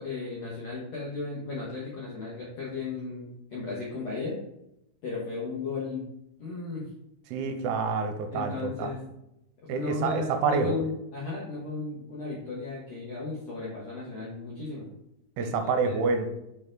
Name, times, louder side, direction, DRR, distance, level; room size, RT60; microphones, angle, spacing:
voice 1, 0.0-4.4 5.0-6.1 6.4-6.8 8.3-9.0 9.6-14.9 15.4-15.9, left 3 dB, 75° left, -6 dB, 1.5 m, -35 dB
voice 2, 7.3-8.9 9.7-10.8 15.4-16.3, right 5 dB, 85° right, 6 dB, 2.5 m, -28 dB
5.9 x 4.4 x 3.8 m, 0.84 s
omnidirectional pair, 4.7 m